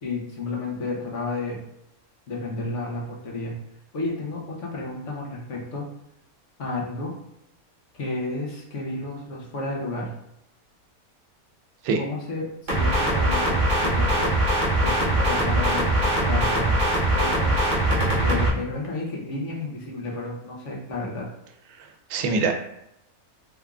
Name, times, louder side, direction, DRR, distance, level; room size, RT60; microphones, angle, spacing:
voice 1, 0.0-1.6 2.3-3.5 3.9-5.8 6.6-7.1 7.9-10.1 12.0-14.3 14.8-16.7 17.1-17.6 18.2-21.3, left 2 dB, 60° left, -3 dB, 1.1 m, -31 dB
sound 1, 12.7-18.5, right 1 dB, 35° right, 1.0 m, -22 dB
voice 2, 21.8-22.6, right 4 dB, 85° right, 4 dB, 1.1 m, -24 dB
3.6 x 3.5 x 2.3 m, 0.82 s
omnidirectional pair, 1.5 m